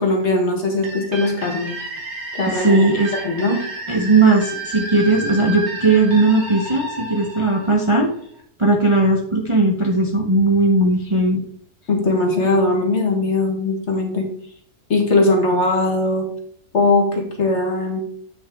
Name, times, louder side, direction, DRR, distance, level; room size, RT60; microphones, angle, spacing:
voice 1, 0.0-1.7 2.3-2.9 3.1-3.6 11.9-14.3 14.9-16.3 16.7-18.0, left 2 dB, 45° left, 2 dB, 1.7 m, -19 dB
sound 1, 0.8-8.4, right 2 dB, 45° right, 2.1 m, -32 dB
voice 2, 2.5-3.1 3.9-8.1 8.6-11.4, right 2 dB, 25° right, 1 dB, 0.8 m, -17 dB
8.3 x 6.5 x 3.6 m, 0.63 s
omnidirectional pair, 1.7 m